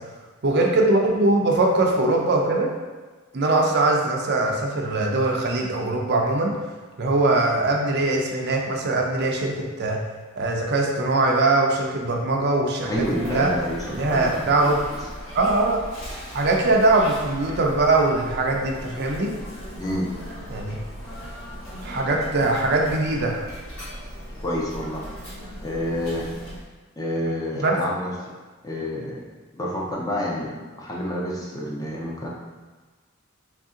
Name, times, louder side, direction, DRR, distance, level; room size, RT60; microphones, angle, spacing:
voice 1, 0.4-2.7 3.3-6.5 7.0-10.0 10.4-12.9 13.2-13.5 13.9-14.8 15.3-15.8 16.3-19.3 20.5-20.8 21.8-23.4 27.6-27.8, right 2 dB, 50° right, 0 dB, 0.5 m, -21 dB
Sneeze, 12.9-26.6, equal, 70° left, 1.4 m, -38 dB
voice 2, 12.9-14.7 17.5-17.6 19.8-20.1 24.4-25.1 25.6-26.3 27.0-28.3 28.6-29.2 29.5-32.3, equal, 15° left, -4 dB, 0.5 m, -29 dB
3.2 x 2.6 x 3.7 m, 1.3 s
head